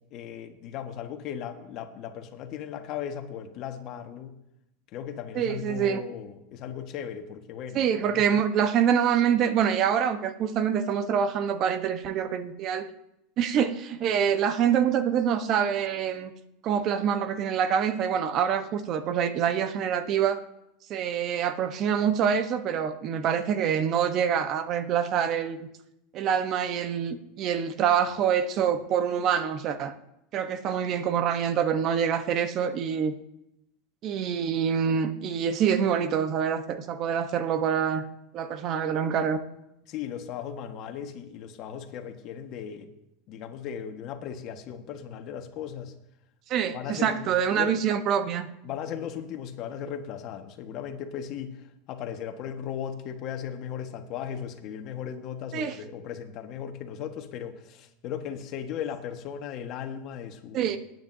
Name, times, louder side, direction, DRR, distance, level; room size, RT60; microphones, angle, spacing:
voice 1, 0.1-4.3 4.9-8.3 39.9-42.9 43.3-45.9 46.7-47.8 48.6-60.7, left 8 dB, 50° left, 6 dB, 1.5 m, -37 dB
voice 2, 5.3-6.0 7.7-12.9 13.4-16.3 16.6-20.4 20.9-25.6 26.1-29.9 30.3-33.1 34.0-38.1 38.3-39.4 46.5-48.5 55.5-55.7 60.5-60.8, right 8 dB, 45° right, 10 dB, 1.1 m, -26 dB
21.0 x 9.3 x 2.7 m, 0.83 s
supercardioid pair, 110°, 0 cm